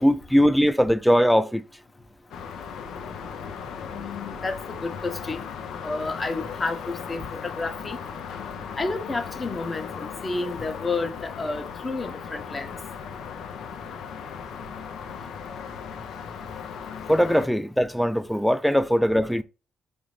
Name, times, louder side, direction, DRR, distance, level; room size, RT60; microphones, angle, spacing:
voice 1, 0.0-1.7 17.1-19.4, equal, ahead, 0.3 m, -20 dB
sound 1, 2.3-17.5, left 6 dB, 85° left, 0.5 m, -37 dB
voice 2, 3.9-5.5 5.8-8.0 8.8-12.8, left 3 dB, 30° left, 0.8 m, -31 dB
4.9 x 2.6 x 3.1 m
cardioid pair, 75°, 0 cm